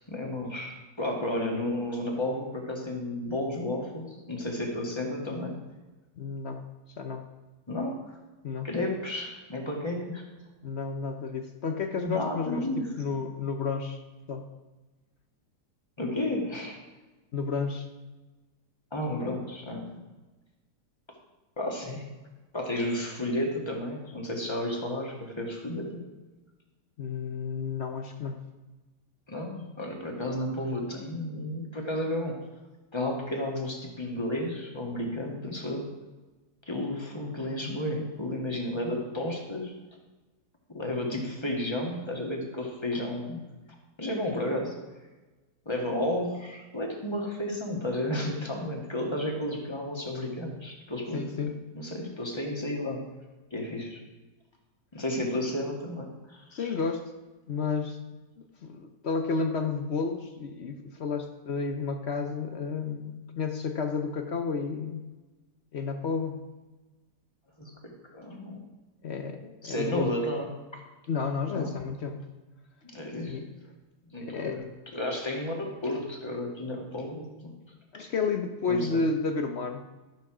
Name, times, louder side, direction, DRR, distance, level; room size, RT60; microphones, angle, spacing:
voice 1, 0.1-5.5 7.7-8.2 8.6-10.2 12.0-12.9 16.0-16.8 18.9-19.9 21.6-22.0 22.5-26.0 29.3-32.4 32.9-35.9 36.7-39.7 40.7-43.4 44.0-44.7 45.7-51.3 51.7-53.0 53.5-54.0 54.9-56.7 67.6-68.6 69.6-70.5 70.7-70.8 71.5-71.7 72.9-73.4 74.1-77.6 78.7-79.0, left 1 dB, 15° left, 0 dB, 1.9 m, -32 dB
voice 2, 6.2-6.6 7.0-7.2 8.4-8.7 10.6-12.7 13.0-14.0 14.3-14.5 17.3-17.9 27.0-28.4 51.1-51.6 56.5-57.1 57.5-58.0 58.6-65.0 65.7-66.4 69.0-70.2 71.1-72.2 73.2-73.5 74.2-74.7 77.9-79.8, left 4 dB, 50° left, 6 dB, 0.9 m, -31 dB
12.0 x 6.8 x 6.1 m, 1.2 s
omnidirectional pair, 1.8 m